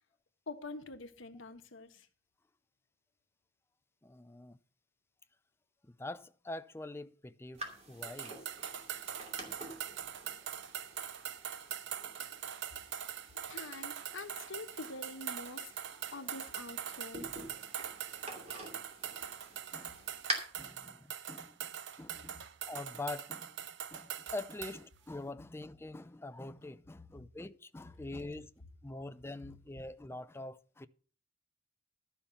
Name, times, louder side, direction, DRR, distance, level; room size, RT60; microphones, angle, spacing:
voice 1, 0.5-2.1 13.5-15.7 16.1-17.4, left 3 dB, 70° left, 1.1 m, -46 dB
voice 2, 4.0-4.6 5.8-8.4 12.6-12.8 13.5-13.6 19.7-20.0 20.6-21.7 22.0-30.9, left 2 dB, 10° left, 0.4 m, -45 dB
sound 1, 7.6-20.3, right 1 dB, 30° right, 2.6 m, -47 dB
sound 2, 8.0-24.8, right 9 dB, 60° right, 0.6 m, -43 dB
12.0 x 5.7 x 6.9 m
head